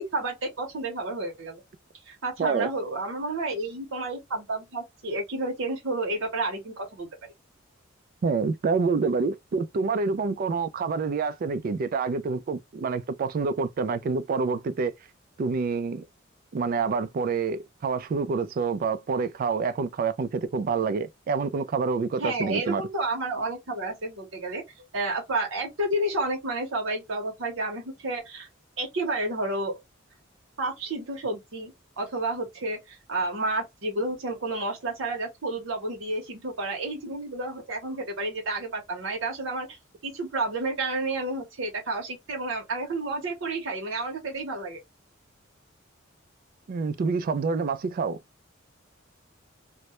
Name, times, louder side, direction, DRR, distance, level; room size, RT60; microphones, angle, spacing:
voice 1, 0.0-1.6 2.1-7.1 22.2-28.5 28.8-29.7 30.6-39.8 40.0-44.8, right 2 dB, 80° right, 0.8 m, -31 dB
voice 2, 8.2-14.9 15.4-16.1 16.5-22.8 46.7-48.2, right 4 dB, 45° right, 0.3 m, -27 dB
2.1 x 2.0 x 2.8 m
head